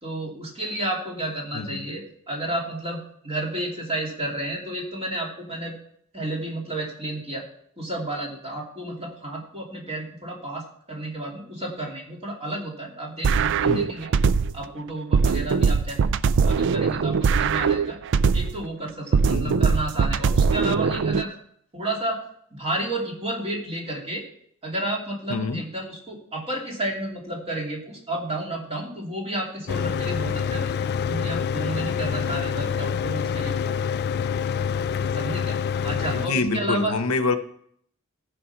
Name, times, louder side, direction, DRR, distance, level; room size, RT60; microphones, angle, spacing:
voice 1, 0.0-5.7 6.1-7.4 7.8-14.1 14.5-16.0 16.4-18.0 18.3-21.3 21.7-22.2 22.5-24.2 24.6-30.7 31.1-33.8 35.2-36.9, right 1 dB, 30° right, -2 dB, 2.8 m, -31 dB
sound 1, 13.2-14.7 15.1-18.7 19.1-21.2, right 5 dB, 55° right, 0.4 m, -21 dB
voice 2, 19.3-19.6 25.3-25.6 36.1-37.4, left 3 dB, 85° left, 10 dB, 0.8 m, -26 dB
Mechanical fan, 29.7-36.3, left 7 dB, 50° left, 0.3 m, -26 dB
14.5 x 5.2 x 5.8 m, 0.66 s
head